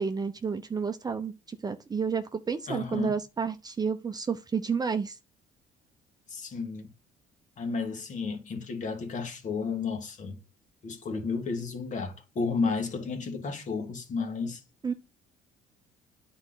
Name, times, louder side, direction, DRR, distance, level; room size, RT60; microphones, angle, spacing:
voice 1, 0.0-5.2 14.8-14.9, right 5 dB, 25° right, 0.7 m, -30 dB
voice 2, 2.7-3.2 6.3-6.9 7.6-10.4 10.8-14.6, left 4 dB, 45° left, 1.9 m, -32 dB
9.6 x 4.3 x 3.9 m
cardioid pair, 110°, 17 cm